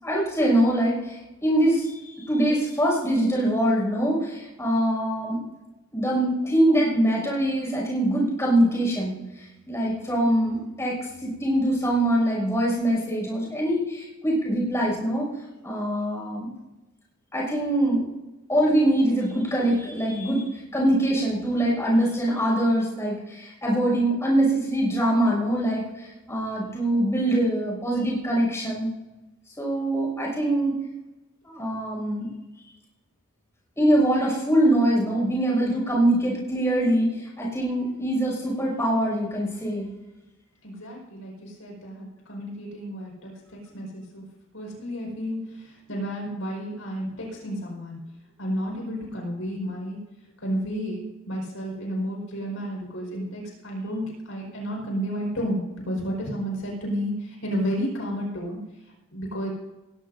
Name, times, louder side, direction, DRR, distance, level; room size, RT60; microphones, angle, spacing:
voice 1, 0.0-5.4 5.9-9.1 9.7-15.3 15.6-16.5 17.3-18.0 18.5-28.9 29.6-30.7 31.4-32.3 33.8-39.9, right 1 dB, 15° left, -3 dB, 6.2 m, -23 dB
voice 2, 40.6-44.2 44.5-48.0 48.4-50.0 50.4-58.6 59.1-59.5, equal, 70° left, -1 dB, 5.0 m, -31 dB
19.0 x 16.0 x 2.7 m, 1.0 s
head